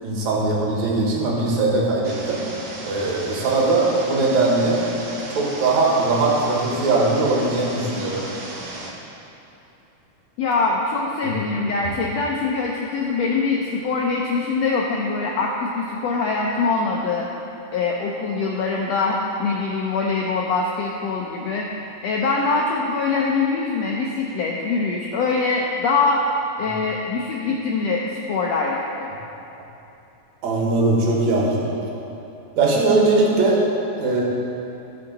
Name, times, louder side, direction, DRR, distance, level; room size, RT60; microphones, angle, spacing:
voice 1, 0.0-2.4 2.8-4.9 5.3-8.3 11.2-11.3 30.4-31.7 32.6-33.6 34.0-34.2, right 2 dB, 65° right, -3 dB, 2.7 m, -20 dB
sound 1, 2.0-8.9, right 2 dB, 85° right, 1.0 m, -35 dB
voice 2, 10.4-17.3 17.7-21.7 22.0-26.2 26.6-28.0 28.3-29.1, left 4 dB, 85° left, -1 dB, 1.4 m, -23 dB
16.0 x 5.6 x 4.0 m, 2.8 s
omnidirectional pair, 3.7 m